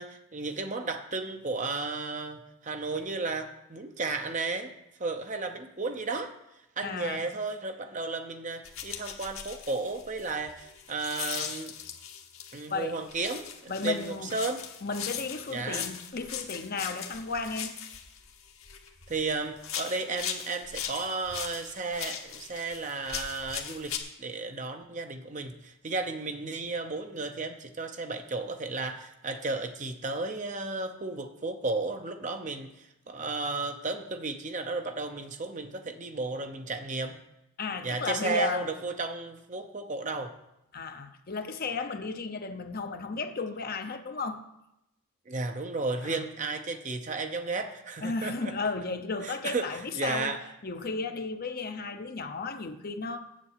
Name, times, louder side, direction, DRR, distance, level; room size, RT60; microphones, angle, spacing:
voice 1, 0.0-4.7 5.0-6.3 6.8-11.7 12.5-14.6 15.5-15.9 19.1-37.2 37.8-40.3 45.3-48.5 49.2-50.4, right 3 dB, 35° right, 0.7 m, -34 dB
voice 2, 6.8-7.3 12.7-13.0 13.7-14.3 14.8-17.7 37.6-38.6 40.7-44.4 46.0-46.2 48.0-50.3 50.6-53.2, left 4 dB, 45° left, 0.7 m, -34 dB
sound 1, 8.6-12.7 13.1-19.2 19.6-24.0, left 8 dB, 70° left, 1.2 m, -39 dB
7.6 x 7.4 x 8.5 m
head